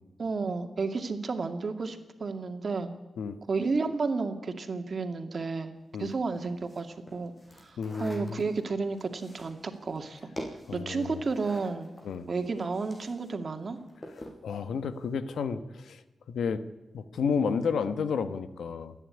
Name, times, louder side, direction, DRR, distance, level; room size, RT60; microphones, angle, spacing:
voice 1, 0.2-3.0 3.5-5.7 6.0-7.3 7.6-10.2 10.7-11.9 12.3-13.8, right 4 dB, 60° right, 6 dB, 2.3 m, -32 dB
sound 1, 6.0-13.3 13.6-14.4, left 1 dB, 35° left, 6.1 m, -47 dB
voice 2, 7.8-8.4 10.7-11.2 12.0-12.3 14.4-16.0 16.3-16.6 16.9-18.9, left 6 dB, 90° left, 12 dB, 1.1 m, -31 dB
28.0 x 10.0 x 9.7 m, 1.1 s
cardioid pair, 45°, 0 cm